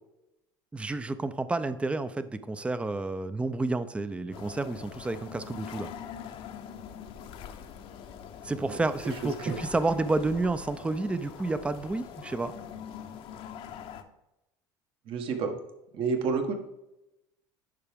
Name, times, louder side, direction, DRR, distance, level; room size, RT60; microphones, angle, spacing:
voice 1, 0.7-5.9 8.4-12.5, right 3 dB, 10° right, 12 dB, 0.5 m, -30 dB
sound 1, 4.3-14.0, left 8 dB, 55° left, 0.8 m, -43 dB
voice 2, 15.1-15.6 15.9-16.5, right 5 dB, 55° right, 5 dB, 1.3 m, -29 dB
11.5 x 4.8 x 3.6 m, 0.93 s
supercardioid pair, 95°, 11 cm